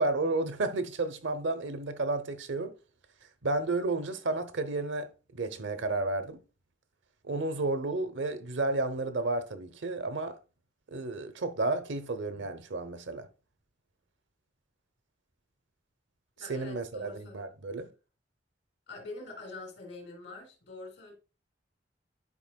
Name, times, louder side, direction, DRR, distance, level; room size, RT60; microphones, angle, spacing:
voice 1, 0.0-2.7 3.4-5.1 5.3-6.4 7.2-10.4 10.9-13.2 16.5-17.9, right 2 dB, 85° right, 0.8 m, -32 dB
voice 2, 16.4-17.5 18.9-21.1, left 2 dB, 70° left, 2.9 m, -45 dB
11.0 x 5.2 x 2.3 m
head